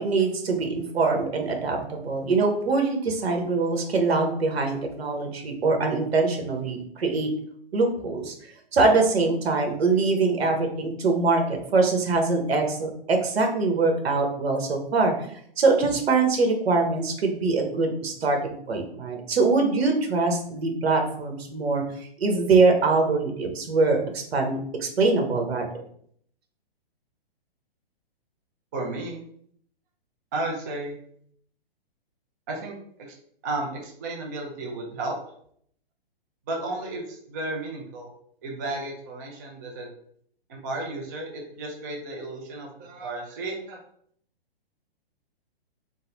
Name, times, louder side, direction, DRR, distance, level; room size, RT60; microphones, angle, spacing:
voice 1, 0.0-7.3 7.7-8.3 8.7-15.3 15.6-18.4 18.7-21.8 22.2-25.6, right 3 dB, 80° right, 3 dB, 1.2 m, -23 dB
voice 2, 28.7-29.2 30.3-31.0 32.5-33.1 33.4-35.2 36.5-38.1 38.4-39.9 40.5-43.8, right 2 dB, 20° right, -1 dB, 0.4 m, -33 dB
4.0 x 2.1 x 3.9 m, 0.64 s
hypercardioid pair, 160°, 31 cm